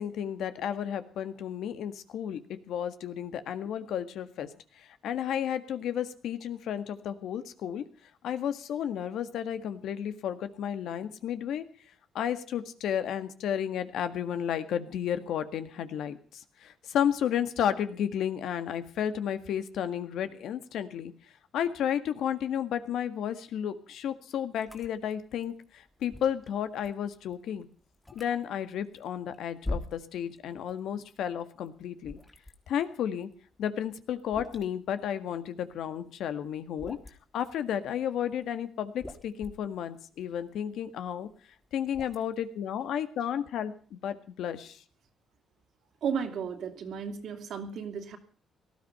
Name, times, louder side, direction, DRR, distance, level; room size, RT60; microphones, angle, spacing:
voice 1, 0.0-4.5 4.8-7.8 8.2-11.6 12.1-21.1 21.5-27.7 28.1-32.2 32.7-33.3 33.6-37.0 37.3-41.3 41.7-44.8, left 9 dB, 80° left, 10 dB, 1.8 m, -32 dB
sound 1, 24.6-30.8 31.0-36.1 36.5-37.3 38.0-38.5 38.8-42.6, left 2 dB, 15° left, 3.1 m, -43 dB
voice 2, 46.0-48.2, right 6 dB, 70° right, 7 dB, 2.8 m, -34 dB
18.5 x 13.0 x 5.6 m, 0.42 s
cardioid pair, 90°, 0 cm